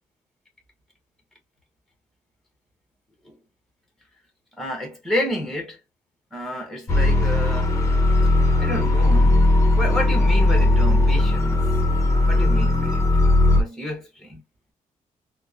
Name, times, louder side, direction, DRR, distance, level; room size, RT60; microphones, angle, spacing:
voice 1, 4.6-5.8 6.3-7.7 8.6-9.4 9.8-11.6 12.3-13.0 13.6-14.4, left 1 dB, ahead, 0.9 m, -29 dB
sound 1, 6.9-13.6, left 2 dB, 20° left, 0.6 m, -18 dB
3.0 x 2.0 x 2.4 m
cardioid pair, 160°, 13 cm